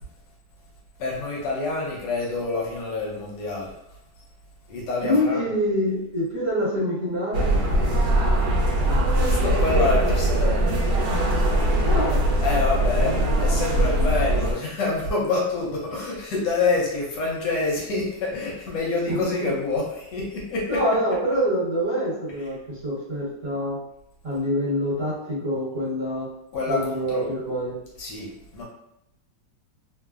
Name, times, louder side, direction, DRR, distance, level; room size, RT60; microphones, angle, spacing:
voice 1, 1.0-3.7 4.7-5.5 8.8-8.9 9.2-10.8 12.4-20.8 26.5-27.3 28.0-28.6, left 3 dB, 75° left, -3 dB, 1.3 m, -27 dB
voice 2, 5.0-7.6 11.8-12.2 19.1-19.5 20.7-23.8 24.2-26.3 26.7-27.8, equal, 50° right, -8 dB, 1.3 m, -25 dB
sound 1, 7.3-14.5, right 1 dB, 70° right, 0.9 m, -21 dB
3.1 x 2.0 x 2.3 m, 0.78 s
omnidirectional pair, 2.0 m